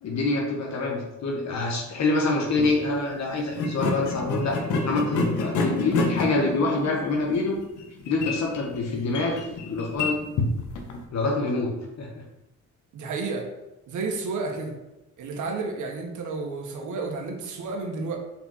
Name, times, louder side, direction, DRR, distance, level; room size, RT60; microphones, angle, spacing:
voice 1, 0.0-7.6 8.1-10.5 11.1-12.1, left 3 dB, 60° left, -1 dB, 1.4 m, -26 dB
sound 1, 2.5-2.7 3.5-11.0, left 3 dB, 80° left, 1.4 m, -29 dB
voice 2, 12.9-13.5 13.9-14.7 15.2-18.2, right 3 dB, 80° right, 1 dB, 1.7 m, -31 dB
5.5 x 4.8 x 5.6 m, 0.96 s
cardioid pair, 90°, 30 cm